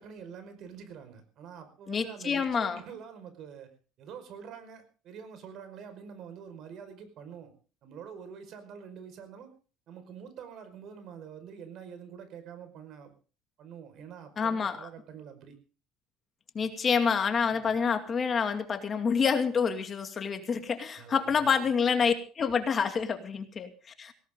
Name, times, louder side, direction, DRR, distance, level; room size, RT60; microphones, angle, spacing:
voice 1, 0.0-3.7 4.0-7.5 7.8-9.5 9.9-13.1 13.6-15.6 17.5-17.7 21.0-21.7, right 7 dB, 60° right, 10 dB, 5.3 m, -46 dB
voice 2, 1.9-2.8 14.4-14.9 16.5-24.1, left 6 dB, 35° left, 7 dB, 2.4 m, -28 dB
18.0 x 18.0 x 3.8 m, 0.37 s
supercardioid pair, 105°, 0 cm